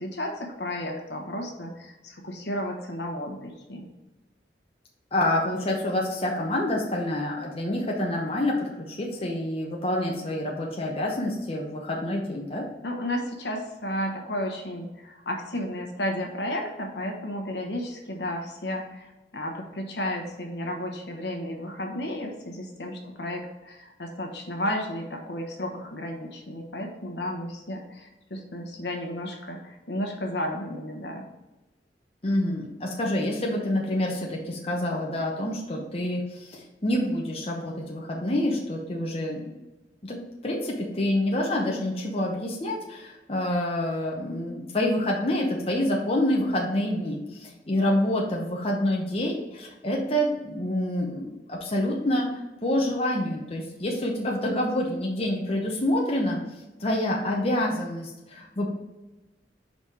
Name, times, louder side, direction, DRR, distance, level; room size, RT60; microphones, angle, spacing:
voice 1, 0.0-3.9 12.8-31.3, left 1 dB, 70° left, 1 dB, 1.1 m, -33 dB
voice 2, 5.1-12.6 32.2-39.5 40.0-52.3 52.6-56.4 56.8-58.7, left 1 dB, 35° left, -2 dB, 0.8 m, -27 dB
5.3 x 4.1 x 4.7 m, 1.1 s
head